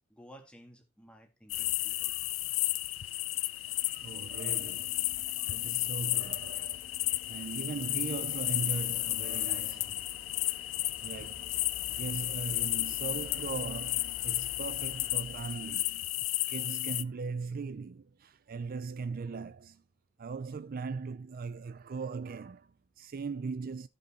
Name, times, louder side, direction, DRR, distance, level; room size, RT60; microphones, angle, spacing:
voice 1, 0.1-2.2, equal, 5° left, 1.7 m, -55 dB
sound 1, 1.5-17.0, left 18 dB, 80° left, 0.5 m, -33 dB
sound 2, 3.3-16.4, left 2 dB, 45° left, 2.1 m, -52 dB
voice 2, 3.5-6.9 7.3-10.0 11.0-19.8 20.2-23.9, right 5 dB, 45° right, 0.4 m, -39 dB
14.0 x 5.3 x 4.1 m
head